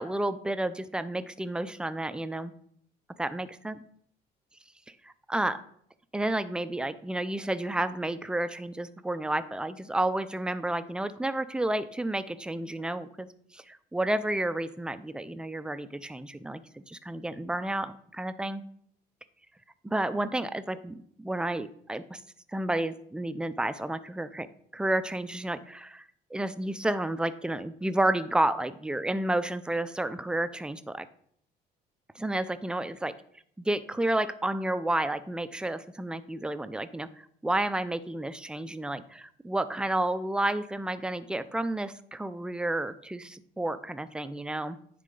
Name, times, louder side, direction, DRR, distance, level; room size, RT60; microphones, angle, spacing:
voice 1, 0.0-2.5 3.2-3.8 5.0-5.6 6.1-13.3 13.5-18.6 19.8-22.2 22.5-24.5 24.7-26.1 26.3-31.1 32.2-33.1 33.6-44.8, right 1 dB, 5° right, 12 dB, 0.4 m, -31 dB
9.8 x 3.8 x 3.9 m, 0.65 s
cardioid pair, 110°, 17 cm